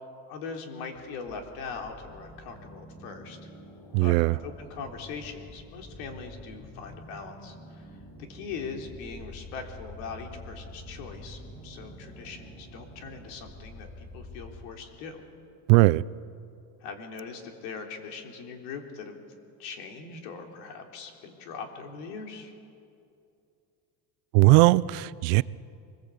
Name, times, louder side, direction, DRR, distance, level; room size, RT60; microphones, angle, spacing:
voice 1, 0.3-3.4 4.0-4.2 4.4-8.0 8.3-15.2 16.8-19.2 19.6-22.5, left 5 dB, 85° left, 3.5 m, -41 dB
sound 1, 1.0-14.7, left 1 dB, 15° left, 5.4 m, -47 dB
voice 2, 3.9-4.4 15.7-16.0 24.3-25.4, right 21 dB, 90° right, 0.6 m, -19 dB
24.5 x 21.5 x 8.3 m
cardioid pair, 170°, 44 cm